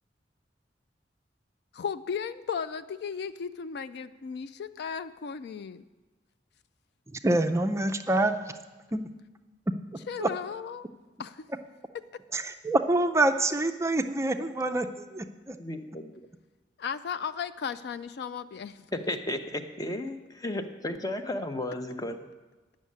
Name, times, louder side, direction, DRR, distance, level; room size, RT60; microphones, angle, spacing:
voice 1, 1.7-5.8 10.1-10.9 11.2-11.4 16.8-18.9, left 6 dB, 65° left, 13 dB, 0.4 m, -35 dB
voice 2, 7.2-8.4 8.9-9.0 10.2-10.3 12.3-15.6, right 2 dB, 15° right, 7 dB, 0.4 m, -26 dB
voice 3, 15.6-16.1 19.1-22.2, left 1 dB, 20° left, 7 dB, 0.7 m, -34 dB
9.6 x 6.3 x 8.5 m, 1.2 s
head